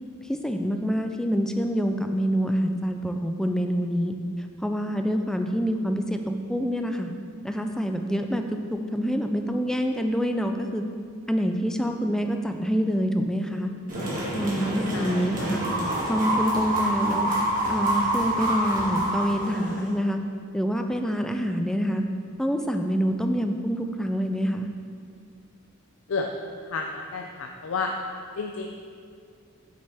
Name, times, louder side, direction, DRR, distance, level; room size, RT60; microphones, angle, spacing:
voice 1, 0.3-4.1 4.6-7.1 7.4-10.8 11.3-13.7 14.3-15.6 16.1-17.3 17.7-20.2 20.5-22.0 22.4-24.7, equal, 5° left, 5 dB, 0.4 m, -26 dB
sound 1, 13.9-19.9, right 1 dB, 40° right, 2.0 m, -27 dB
voice 2, 14.9-15.5 26.1-26.3 26.6-27.9 28.4-28.7, left 4 dB, 85° left, 2 dB, 0.5 m, -31 dB
8.4 x 6.5 x 3.4 m, 2.2 s
head